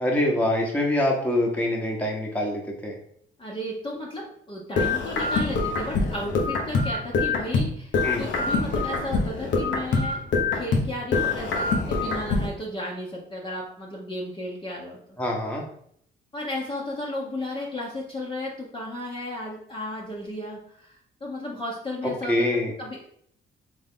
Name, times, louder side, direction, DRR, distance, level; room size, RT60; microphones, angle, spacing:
voice 1, 0.0-2.9 8.0-8.3 15.2-15.6 22.0-22.7, left 1 dB, 5° left, -1 dB, 1.2 m, -25 dB
voice 2, 3.4-10.2 10.5-15.2 16.3-22.5 22.8-23.1, left 1 dB, 25° left, -4 dB, 1.0 m, -34 dB
sound 1, 4.8-7.7 7.9-10.9 11.1-12.5, left 3 dB, 70° left, 1.0 m, -25 dB
3.8 x 3.5 x 3.7 m, 0.65 s
cardioid pair, 90°, 20 cm